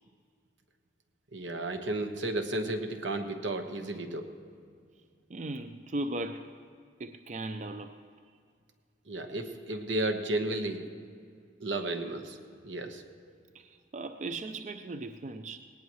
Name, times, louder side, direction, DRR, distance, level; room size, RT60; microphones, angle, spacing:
voice 1, 1.3-4.3 9.1-10.9 11.6-12.4 12.6-13.0, right 2 dB, 85° right, 5 dB, 1.2 m, -33 dB
voice 2, 5.3-6.5 7.0-8.0 13.5-15.6, right 2 dB, 40° right, 8 dB, 0.4 m, -37 dB
19.0 x 18.5 x 3.1 m, 2.2 s
head